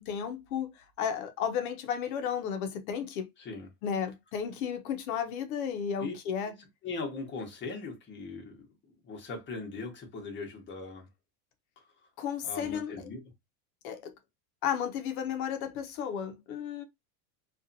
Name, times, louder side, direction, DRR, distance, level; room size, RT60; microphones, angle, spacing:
voice 1, 0.0-3.3 3.8-6.5 12.2-13.0 13.8-14.1 14.6-16.8, left 8 dB, 85° left, 0.7 m, -33 dB
voice 2, 3.4-3.7 6.0-6.1 6.8-11.1 11.8-11.9 12.4-13.2, left 4 dB, 25° left, 0.9 m, -40 dB
2.7 x 2.4 x 2.6 m
supercardioid pair, 135°, 42 cm